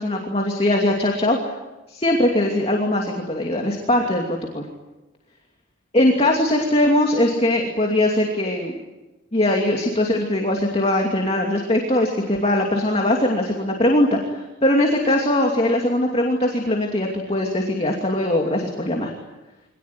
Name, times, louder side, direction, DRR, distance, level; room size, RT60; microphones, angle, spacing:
voice 1, 0.0-1.5 1.9-4.7 5.9-8.8 9.3-19.1, left 1 dB, 30° left, 1 dB, 2.7 m, -21 dB
25.0 x 19.0 x 9.6 m, 1.1 s
head